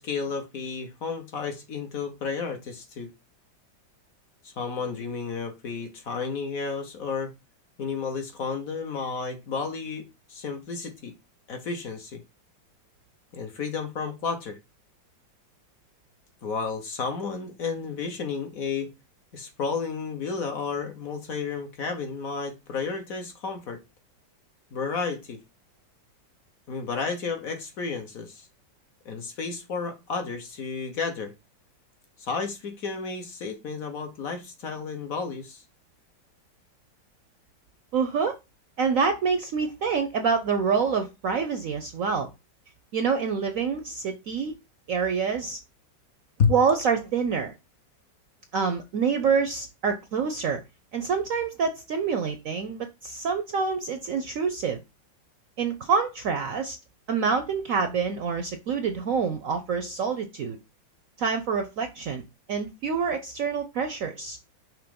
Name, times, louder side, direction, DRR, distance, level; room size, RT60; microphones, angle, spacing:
voice 1, 0.0-3.1 4.4-7.3 7.8-11.1 11.5-12.2 13.3-14.6 16.4-18.9 19.3-23.8 24.7-25.4 26.7-28.5 29.0-31.3 32.2-35.6 46.4-46.5, left 5 dB, 55° left, 1.2 m, -32 dB
voice 2, 37.9-38.4 38.8-42.3 42.9-44.5 44.9-45.6 46.5-47.5 48.5-50.6 50.9-54.8 55.6-56.8 57.1-60.6 61.2-62.2 62.5-64.4, right 5 dB, 65° right, 0.8 m, -26 dB
6.1 x 3.1 x 5.1 m
omnidirectional pair, 2.0 m